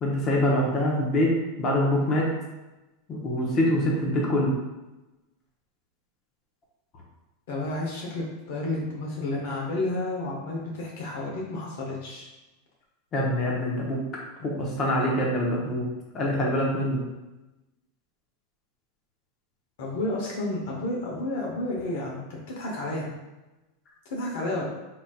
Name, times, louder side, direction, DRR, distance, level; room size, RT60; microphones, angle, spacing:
voice 1, 0.0-2.3 3.1-4.5 13.1-14.0 14.4-15.9 16.1-17.0, left 1 dB, 35° left, -2 dB, 0.9 m, -25 dB
voice 2, 7.5-12.3 19.8-23.1 24.1-24.6, left 2 dB, 70° left, -2 dB, 0.8 m, -31 dB
3.8 x 2.6 x 2.3 m, 1.1 s
hypercardioid pair, 115°, 0 cm